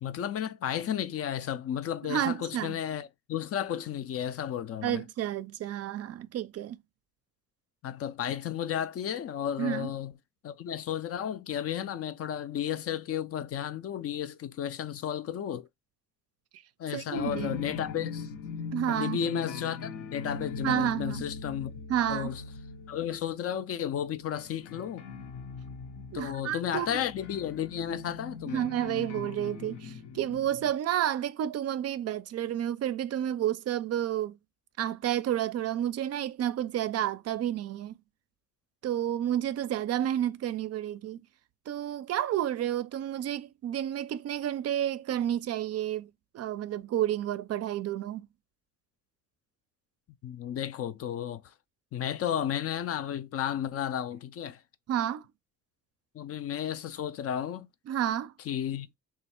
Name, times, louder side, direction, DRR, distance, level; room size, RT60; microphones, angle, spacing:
voice 1, 0.0-5.0 7.8-10.1 10.4-15.7 16.8-18.3 18.9-21.7 22.1-22.4 22.9-25.0 26.1-28.6 50.2-51.4 51.9-54.6 56.1-57.7 58.5-58.9, left 9 dB, 50° left, 0.4 m, -33 dB
voice 2, 2.0-2.8 4.8-6.8 9.6-9.9 16.9-17.6 18.7-19.2 20.6-21.2 21.9-22.3 26.1-27.0 28.5-34.4 34.8-37.9 38.8-41.2 41.7-46.1 46.3-48.3 54.9-55.2 57.9-58.3, right 11 dB, 55° right, 0.4 m, -30 dB
sound 1, 17.1-30.7, left 5 dB, 80° left, 0.9 m, -41 dB
3.1 x 2.4 x 4.3 m
cardioid pair, 90°, 30 cm